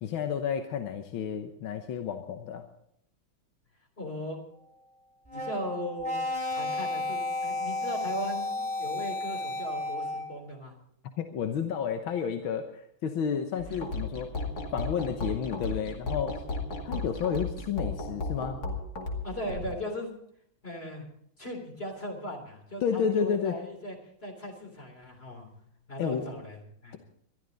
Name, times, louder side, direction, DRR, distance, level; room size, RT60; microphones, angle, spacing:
voice 1, 0.0-2.6 11.2-14.3 14.7-16.4 16.8-18.6 22.8-23.6 26.0-26.3, left 7 dB, 75° left, 6 dB, 1.9 m, -31 dB
voice 2, 4.0-4.4 5.3-6.2 6.5-10.8 19.2-20.2 20.6-21.1 21.4-25.5 25.9-27.0, equal, 25° left, 3 dB, 3.6 m, -38 dB
sound 1, 5.3-10.4, left 2 dB, 5° left, 5.4 m, -32 dB
sound 2, 13.6-19.8, left 2 dB, 50° left, 2.8 m, -35 dB
21.5 x 13.0 x 4.0 m, 0.70 s
omnidirectional pair, 2.3 m